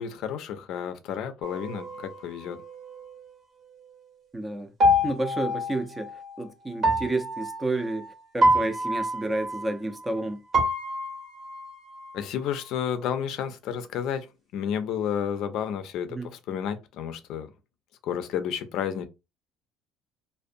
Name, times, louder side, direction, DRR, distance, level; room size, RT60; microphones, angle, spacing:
voice 1, 0.0-2.6 12.1-14.3 14.5-17.5 18.0-19.1, left 8 dB, 70° left, 0.4 m, -31 dB
sound 1, 1.4-3.1 4.8-6.4 6.8-10.2 10.5-12.7, equal, 50° right, 0.9 m, -27 dB
voice 2, 4.3-4.7 5.0-6.1 6.4-8.0 8.3-10.4 16.1-16.3, right 2 dB, 15° right, 0.5 m, -30 dB
2.4 x 2.1 x 2.6 m
supercardioid pair, 75°, 0 cm